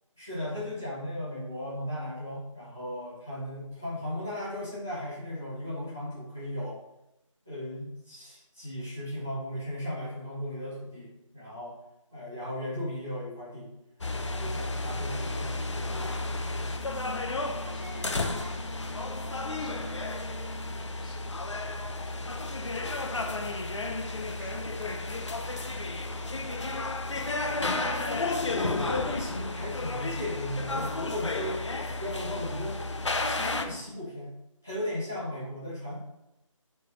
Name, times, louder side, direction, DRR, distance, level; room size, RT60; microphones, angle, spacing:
voice 1, 0.2-6.8 7.5-11.7 12.1-13.7 14.1-16.2 27.6-34.3 34.6-36.0, left 1 dB, 5° left, -11 dB, 0.5 m, -36 dB
voice 2, 12.1-12.4 17.3-27.4 31.3-31.7 35.1-35.6, right 1 dB, 40° right, -2 dB, 1.4 m, -50 dB
sound 1, 14.0-33.7, left 2 dB, 60° left, 0.8 m, -32 dB
5.2 x 3.9 x 5.4 m, 0.88 s
figure-of-eight pair, 165°, 17 cm